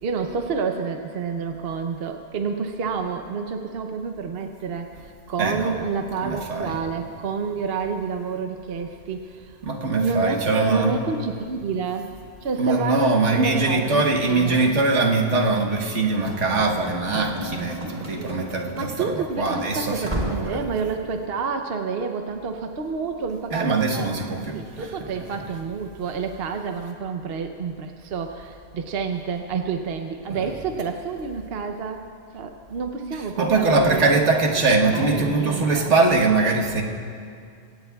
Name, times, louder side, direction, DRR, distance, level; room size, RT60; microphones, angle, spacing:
voice 1, 0.0-9.6 9.9-12.1 12.4-14.7 18.2-18.3 18.7-20.1 20.4-24.1 24.5-32.0 32.3-34.1 34.9-35.9, right 5 dB, 60° right, 5 dB, 0.9 m, -29 dB
voice 2, 5.4-5.7 6.2-6.8 9.6-11.0 12.6-20.6 23.5-24.9 30.3-30.5 33.4-36.8, right 3 dB, 75° right, 1 dB, 1.6 m, -22 dB
Run / Slam, 16.3-19.1 19.4-19.6 20.0-20.5, equal, 35° right, 2.8 m, -33 dB
23.5 x 17.5 x 2.3 m, 2.3 s
omnidirectional pair, 1.2 m